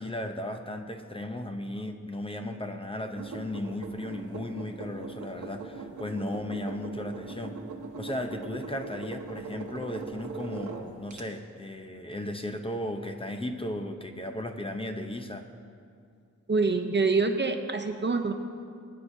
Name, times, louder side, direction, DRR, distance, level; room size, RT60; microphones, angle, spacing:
voice 1, 0.0-7.6 8.0-15.5, left 1 dB, 20° left, 5 dB, 0.7 m, -35 dB
sound 1, 3.2-11.2, right 4 dB, 75° right, 1.1 m, -41 dB
voice 2, 16.5-18.3, right 4 dB, 40° right, 7 dB, 0.6 m, -25 dB
21.5 x 9.8 x 2.7 m, 2.3 s
wide cardioid pair, 105°, 30 cm